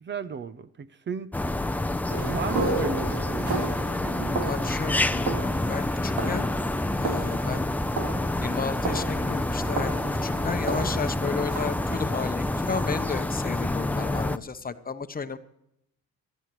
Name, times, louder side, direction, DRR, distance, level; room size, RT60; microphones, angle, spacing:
voice 1, 0.0-1.3 2.2-3.5 4.0-4.4, right 6 dB, 40° right, 0.7 m, -34 dB
sound 1, 1.3-14.4, left 1 dB, 5° left, 0.5 m, -28 dB
sound 2, 2.1-13.3, right 3 dB, 85° right, 3.7 m, -34 dB
voice 2, 4.5-5.4 5.7-6.5 6.9-7.7 8.4-15.4, left 5 dB, 30° left, 0.9 m, -33 dB
19.0 x 13.5 x 3.1 m
cardioid pair, 90°, 30 cm